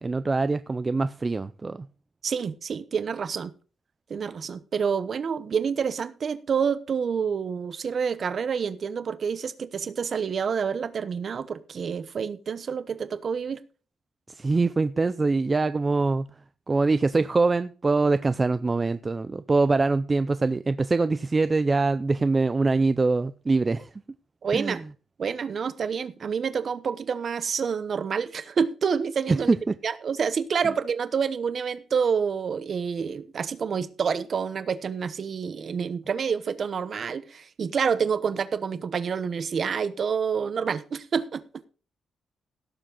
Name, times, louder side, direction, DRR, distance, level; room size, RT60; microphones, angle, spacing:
voice 1, 0.0-1.9 14.3-16.3 16.7-23.9 24.5-24.8 29.5-29.7, right 3 dB, 20° right, 0.4 m, -24 dB
voice 2, 2.2-3.5 4.1-13.6 24.4-24.8 25.2-29.5 29.8-41.4, right 6 dB, 40° right, 0.9 m, -28 dB
17.0 x 7.4 x 3.8 m
wide cardioid pair, 180°, 0 cm